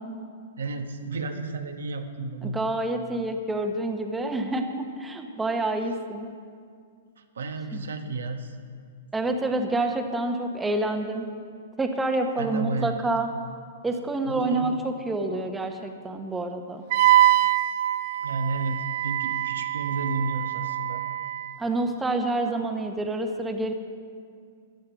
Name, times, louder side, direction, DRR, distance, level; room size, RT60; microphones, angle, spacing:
voice 1, 0.6-2.6 7.3-8.5 12.4-13.1 14.2-14.8 18.2-21.0, right 3 dB, 90° right, 5 dB, 1.1 m, -32 dB
voice 2, 2.4-6.3 7.7-7.9 9.1-11.3 11.8-13.3 13.8-16.8 21.6-23.7, right 2 dB, 10° right, 4 dB, 1.1 m, -28 dB
Wind instrument woodwind instrument, 16.9-21.5, right 13 dB, 50° right, 0.5 m, -24 dB
14.5 x 10.5 x 5.9 m, 2.2 s
hypercardioid pair, 135°, 0 cm